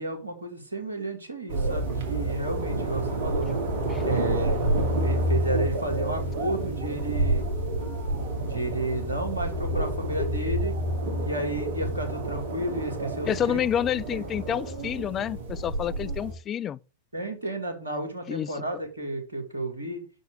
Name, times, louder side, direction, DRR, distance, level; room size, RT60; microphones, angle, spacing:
voice 1, 0.0-3.5 4.0-4.6 5.0-7.5 8.4-10.7 11.2-13.6 14.1-14.2 17.1-20.0, right 1 dB, 75° right, 2.0 m, -32 dB
sound 1, 1.5-16.3, right 1 dB, 55° right, 2.3 m, -29 dB
voice 2, 13.3-16.8 18.3-18.5, left 10 dB, 25° left, 0.3 m, -28 dB
6.1 x 5.2 x 6.3 m
figure-of-eight pair, 90°, 0 cm